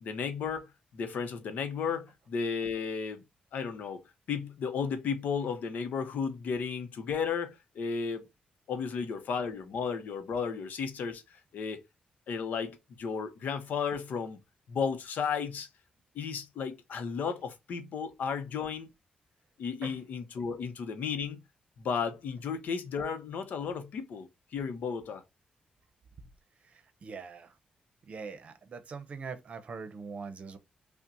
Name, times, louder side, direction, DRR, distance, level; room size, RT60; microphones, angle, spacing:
voice 1, 0.0-3.2 3.5-4.0 4.3-8.3 8.7-11.8 12.3-14.4 14.7-15.7 16.1-18.9 19.6-21.4 21.8-25.2, left 6 dB, 75° left, 0.7 m, -34 dB
voice 2, 26.6-27.6 28.1-30.6, right 5 dB, 50° right, 0.7 m, -42 dB
5.5 x 2.1 x 2.5 m
cardioid pair, 120°, 3 cm